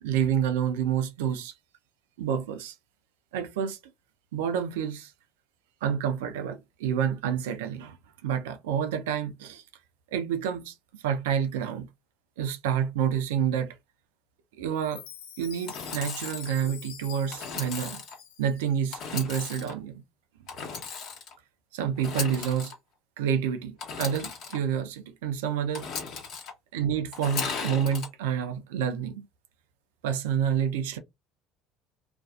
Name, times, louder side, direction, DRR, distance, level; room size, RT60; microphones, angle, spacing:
voice 1, 0.0-1.5 2.2-2.8 3.3-3.8 4.3-5.1 5.8-8.0 8.2-9.6 10.1-11.9 12.4-13.8 14.6-15.0 15.4-18.0 18.4-20.0 21.7-22.7 23.2-25.9 26.7-29.3 30.0-31.0, right 8 dB, 75° right, 0.4 m, -28 dB
Chime, 14.7-19.0, left 8 dB, 75° left, 0.5 m, -45 dB
Engine / Sawing, 15.7-16.5 17.3-18.1 18.9-19.7 20.5-21.3 21.9-22.7 23.8-24.6 25.7-26.5 27.1-28.1, left 5 dB, 60° left, 0.9 m, -36 dB
2.5 x 2.3 x 2.3 m
hypercardioid pair, 65°, 0 cm